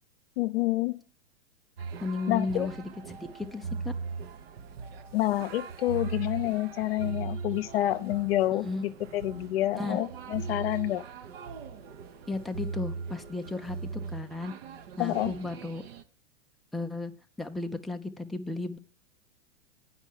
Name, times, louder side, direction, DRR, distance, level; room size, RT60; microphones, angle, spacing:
voice 1, 0.4-1.0 2.3-2.7 5.1-11.0 15.0-15.3, left 16 dB, 55° left, 10 dB, 0.8 m, -28 dB
sound 1, 1.8-16.0, right 5 dB, 55° right, 1.0 m, -39 dB
voice 2, 2.0-3.9 8.6-8.8 9.7-10.0 12.3-13.8 14.1-14.5 15.0-15.8 16.7-17.1 17.4-18.8, left 3 dB, ahead, 4 dB, 0.4 m, -34 dB
9.0 x 5.6 x 7.3 m, 0.42 s
hypercardioid pair, 120°, 35 cm